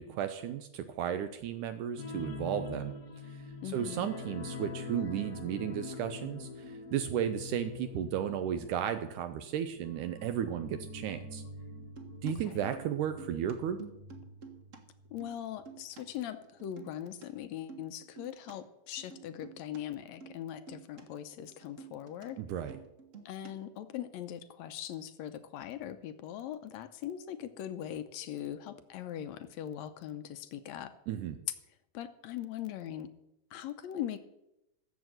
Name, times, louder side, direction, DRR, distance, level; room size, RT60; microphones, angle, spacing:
voice 1, 0.0-2.9 3.2-11.4 12.2-13.8 22.4-22.8 31.1-31.4, right 9 dB, 80° right, 8 dB, 2.2 m, -34 dB
sound 1, 2.0-15.2 15.5-15.7 16.1-16.2, left 3 dB, 50° left, 1.1 m, -45 dB
voice 2, 3.6-4.1 12.2-12.7 15.1-22.4 23.3-31.0 31.9-33.1 33.5-34.2, left 11 dB, 75° left, 10 dB, 1.7 m, -41 dB
sound 2, 11.8-14.8 15.0-16.0 16.4-17.2 17.5-18.6 19.0-19.8 20.2-20.4 20.7-21.0 21.3-22.3 22.5-23.8, right 5 dB, 50° right, 0.9 m, -51 dB
15.5 x 7.4 x 7.8 m, 0.87 s
omnidirectional pair, 3.7 m